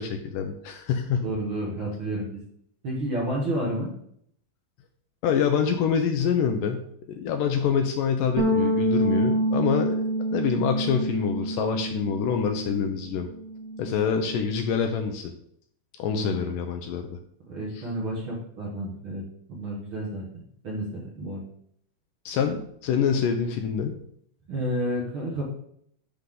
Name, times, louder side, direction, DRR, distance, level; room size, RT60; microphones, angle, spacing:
voice 1, 0.0-1.3 5.2-10.0 10.3-13.3 13.8-15.3 16.0-17.2 17.8-17.9 22.3-24.0, left 7 dB, 75° left, 5 dB, 2.2 m, -26 dB
voice 2, 1.2-2.3 2.8-3.9 16.1-16.5 17.5-19.2 19.5-20.2 20.6-21.4 24.5-25.4, right 1 dB, 45° right, -4 dB, 1.9 m, -30 dB
sound 1, 8.4-12.9 13.2-14.6, right 1 dB, 60° right, 2.7 m, -27 dB
11.5 x 4.6 x 3.8 m, 0.68 s
omnidirectional pair, 4.2 m